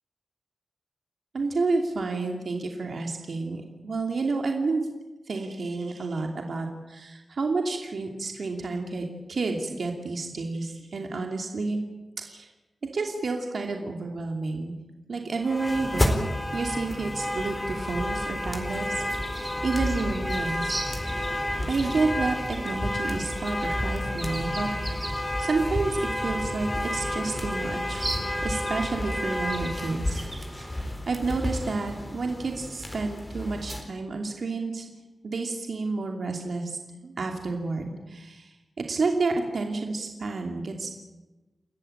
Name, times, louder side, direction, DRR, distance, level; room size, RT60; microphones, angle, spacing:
voice 1, 1.3-4.8 5.3-11.8 12.2-12.5 12.9-14.7 15.1-16.3 16.5-20.8 21.7-24.7 25.2-28.1 28.4-30.2 30.6-34.9 35.2-38.5 38.8-40.9, right 3 dB, 60° right, 3 dB, 2.7 m, -30 dB
sound 1, 15.4-33.8, left 1 dB, 20° left, 4.1 m, -30 dB
sound 2, 19.1-30.8, right 1 dB, 20° right, 5.6 m, -41 dB
29.5 x 14.5 x 8.9 m, 1.1 s
wide cardioid pair, 120°, 0 cm